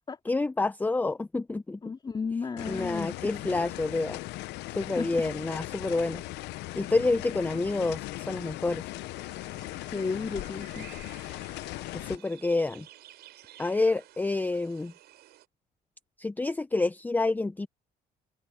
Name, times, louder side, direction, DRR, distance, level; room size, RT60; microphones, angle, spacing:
voice 1, 0.3-1.8 2.7-4.2 4.8-6.2 6.8-8.8 11.9-12.9 13.6-14.9 16.2-17.7, left 3 dB, 10° left, 0.5 m, -28 dB
voice 2, 1.8-3.4 4.8-5.1 9.6-11.8, left 5 dB, 25° left, 3.0 m, -35 dB
sound 1, 2.6-12.2, left 19 dB, 85° left, 0.6 m, -38 dB
sound 2, 9.1-15.5, right 14 dB, 75° right, 6.4 m, -53 dB
cardioid pair, 110°, 17 cm